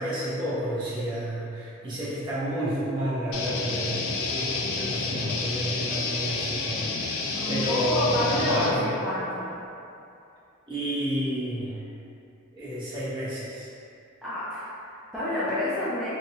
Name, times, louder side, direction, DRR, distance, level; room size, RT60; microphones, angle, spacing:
voice 1, 0.0-8.8 10.7-11.8 12.5-13.7, right 1 dB, 25° right, -11 dB, 0.8 m, -30 dB
sound 1, 3.3-8.7, left 4 dB, 75° left, 0.3 m, -30 dB
voice 2, 7.3-9.5 14.2-16.1, left 1 dB, ahead, -13 dB, 0.4 m, -29 dB
2.8 x 2.2 x 2.7 m, 2.6 s
head